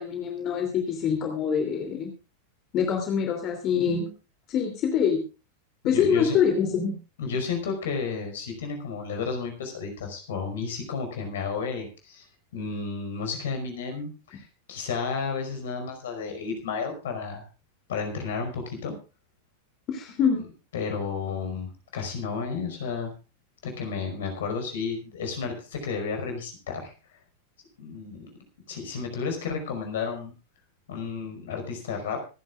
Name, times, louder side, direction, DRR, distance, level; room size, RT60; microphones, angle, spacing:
voice 1, 0.0-2.1 2.7-4.1 4.5-5.2 5.8-7.0 19.9-20.4, left 7 dB, 35° left, 3 dB, 3.0 m, -25 dB
voice 2, 5.8-6.4 7.2-12.2 12.5-17.4 17.9-18.9 20.7-23.1 23.6-26.9 27.8-28.3 28.7-30.3 30.9-32.2, left 5 dB, 60° left, 4 dB, 5.2 m, -32 dB
25.5 x 11.0 x 2.5 m, 0.32 s
figure-of-eight pair, 90°, 0 cm